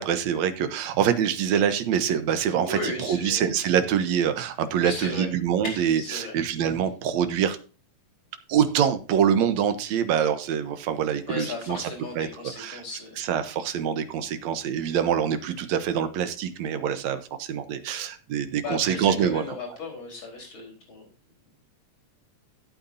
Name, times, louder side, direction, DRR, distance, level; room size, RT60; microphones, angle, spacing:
voice 1, 0.0-7.6 8.5-12.3 12.6-12.8 13.2-19.5, right 8 dB, 70° right, 10 dB, 2.2 m, -25 dB
voice 2, 2.6-3.5 4.8-5.3 5.6-6.3 11.3-13.2 18.6-21.0, left 3 dB, 40° left, 0 dB, 5.2 m, -35 dB
14.0 x 8.6 x 2.8 m, 0.36 s
omnidirectional pair, 3.5 m